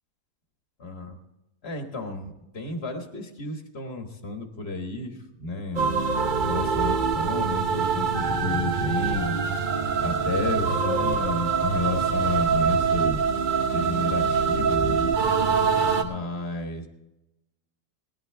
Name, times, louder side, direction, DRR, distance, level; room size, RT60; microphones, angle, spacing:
voice 1, 0.8-1.2 1.6-6.0 6.4-9.4 10.0-13.2 13.7-15.1 16.0-16.9, left 2 dB, 40° left, 4 dB, 1.6 m, -32 dB
sound 1, 5.8-16.0, right 5 dB, 35° right, 1.1 m, -24 dB
19.0 x 12.0 x 3.4 m, 0.94 s
omnidirectional pair, 1.7 m